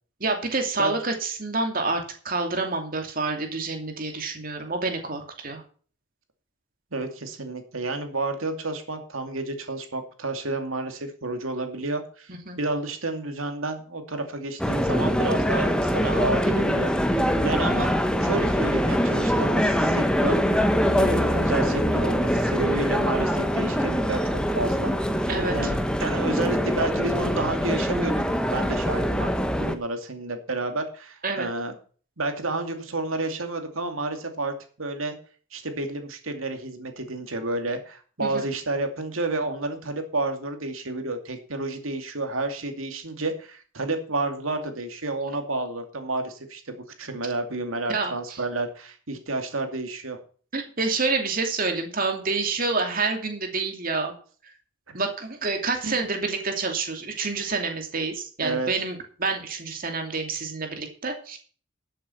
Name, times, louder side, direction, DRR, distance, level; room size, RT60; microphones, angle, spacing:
voice 1, 0.2-5.6 12.3-12.6 18.4-18.5 25.3-25.7 31.2-31.5 38.2-38.4 47.9-48.4 50.5-54.1 54.9-61.4, right 3 dB, 45° right, 4 dB, 2.6 m, -28 dB
voice 2, 6.9-17.2 17.4-17.9 18.2-20.7 21.0-25.3 25.5-28.1 28.5-29.3 29.6-31.7 32.2-35.2 35.5-50.2 54.9-55.0 55.8-56.0 58.4-58.7, right 2 dB, 80° right, 6 dB, 2.5 m, -30 dB
sound 1, 14.6-29.8, equal, 5° left, 1.0 m, -23 dB
12.5 x 7.7 x 5.8 m, 0.42 s
head